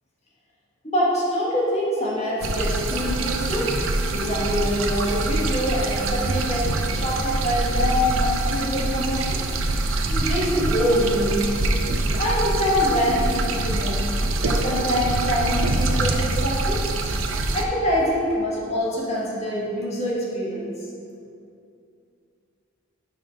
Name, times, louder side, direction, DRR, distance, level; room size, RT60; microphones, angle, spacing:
voice 1, 0.8-3.7 4.1-9.4 10.1-11.4 12.2-14.0 14.5-16.8 17.5-20.7, equal, 30° left, -6 dB, 1.5 m, -25 dB
sound 1, 2.4-17.6, right 2 dB, 70° right, 0.5 m, -24 dB
5.7 x 5.1 x 5.4 m, 2.5 s
head